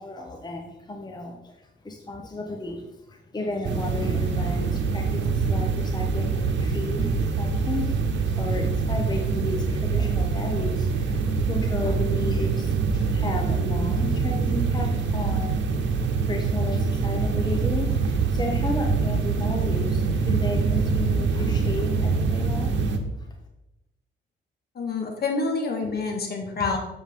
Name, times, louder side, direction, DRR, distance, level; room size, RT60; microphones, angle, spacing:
voice 1, 0.0-23.3, left 2 dB, 20° left, 2 dB, 1.0 m, -33 dB
sound 1, 3.6-23.0, right 5 dB, 65° right, 1.1 m, -24 dB
voice 2, 24.8-26.8, left 4 dB, 55° left, 3 dB, 1.9 m, -27 dB
7.2 x 7.0 x 3.8 m, 0.93 s
cardioid pair, 90°, 20 cm